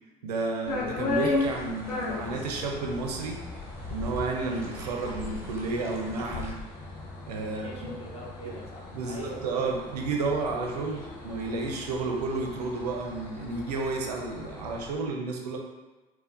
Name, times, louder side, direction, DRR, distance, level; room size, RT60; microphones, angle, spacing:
voice 1, 0.2-3.4 3.9-6.6 7.3-7.7 8.4-8.5 8.9-15.6, right 3 dB, 75° right, 1 dB, 0.4 m, -31 dB
sound 1, 0.7-14.9, left 3 dB, 65° left, 0.7 m, -36 dB
sound 2, 1.1-6.5, right 2 dB, 15° right, 0.8 m, -48 dB
voice 2, 7.4-9.8, equal, 30° left, -1 dB, 0.7 m, -43 dB
4.3 x 2.1 x 2.4 m, 1.2 s
figure-of-eight pair, 50°, 21 cm